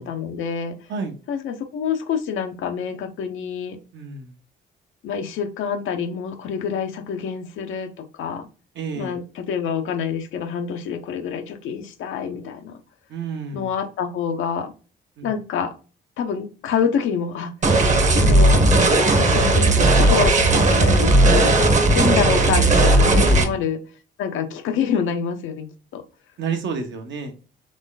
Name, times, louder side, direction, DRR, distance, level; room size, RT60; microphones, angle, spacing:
voice 1, 0.0-0.8 1.3-3.8 5.0-8.5 9.0-12.8 13.5-14.7 15.2-15.7 16.2-17.6 18.1-18.6 19.2-19.7 20.0-23.8 24.2-26.0, left 7 dB, 80° left, 7 dB, 0.8 m, -27 dB
voice 2, 3.9-4.4 8.7-9.2 13.1-13.7 15.2-15.3 23.2-23.6 26.4-27.4, right 5 dB, 70° right, 4 dB, 1.1 m, -30 dB
sound 1, 17.6-23.4, right 2 dB, 35° right, 1.0 m, -16 dB
3.8 x 3.2 x 3.8 m, 0.34 s
cardioid pair, 90°, 20 cm